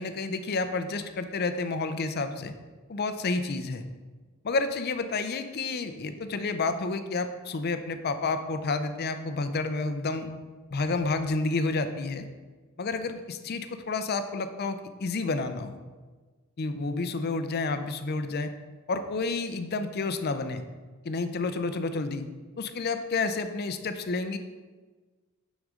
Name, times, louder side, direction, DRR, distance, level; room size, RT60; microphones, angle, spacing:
voice 1, 0.0-2.5 2.9-3.9 4.4-10.3 10.7-12.2 12.8-15.8 16.6-18.5 18.9-20.7 21.0-22.2 22.6-24.4, left 3 dB, 45° left, 9 dB, 0.5 m, -30 dB
6.3 x 6.2 x 3.7 m, 1.3 s
head